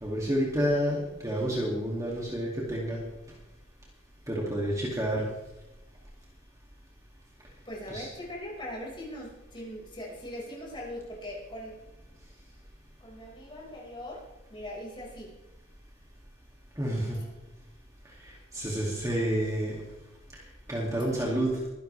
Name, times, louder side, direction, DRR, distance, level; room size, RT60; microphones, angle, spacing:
voice 1, 0.0-3.0 4.3-5.2 7.9-8.1 16.8-17.2 18.2-19.8 20.7-21.6, right 1 dB, 15° right, -4 dB, 2.5 m, -29 dB
voice 2, 7.7-11.8 13.0-15.3 17.1-17.3 21.0-21.3, left 1 dB, 25° left, -3 dB, 5.2 m, -41 dB
23.5 x 11.5 x 3.4 m, 0.98 s
head